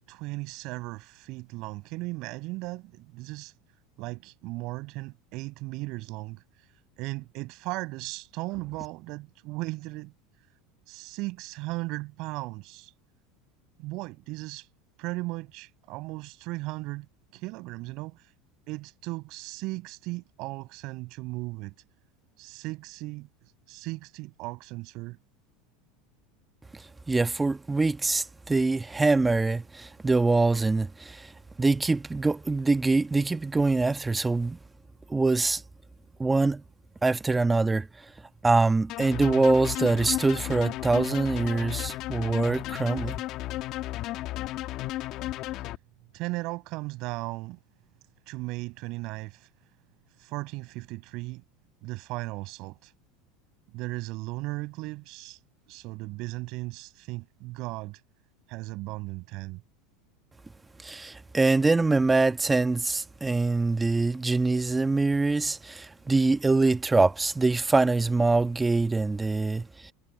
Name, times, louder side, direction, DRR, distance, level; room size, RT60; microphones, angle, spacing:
voice 1, 0.1-3.5 4.0-6.4 7.0-10.1 10.9-12.9 13.8-14.7 15.0-17.1 17.3-18.3 18.7-21.7 22.4-23.3 23.7-25.2 46.1-47.6 48.3-49.5 50.2-51.4 51.8-52.9 53.7-55.4 55.7-58.0 58.5-59.6, right 22 dB, 60° right, 5.6 m, -36 dB
voice 2, 26.7-31.3 31.6-34.6 35.1-35.6 36.2-36.6 37.0-37.9 38.4-43.2 60.8-69.9, right 3 dB, 15° right, 1.6 m, -24 dB
sound 1, 38.9-45.8, left 16 dB, 55° left, 1.6 m, -33 dB
supercardioid pair, 105°, 0 cm